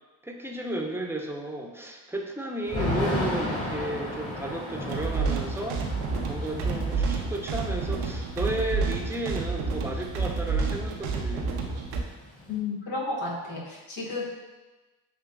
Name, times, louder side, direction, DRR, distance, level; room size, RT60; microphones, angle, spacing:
voice 1, 0.2-5.8 6.3-11.5, right 1 dB, 5° right, 1 dB, 0.7 m, -33 dB
Thunder / Rain, 2.7-10.5 10.8-10.9 11.2-12.6, left 1 dB, 30° left, 1.3 m, -34 dB
sound 1, 4.9-12.0, right 4 dB, 85° right, 0.7 m, -29 dB
voice 2, 12.5-14.3, left 3 dB, 65° left, -3 dB, 1.2 m, -32 dB
6.6 x 2.8 x 2.3 m, 1.2 s
supercardioid pair, 50°, 48 cm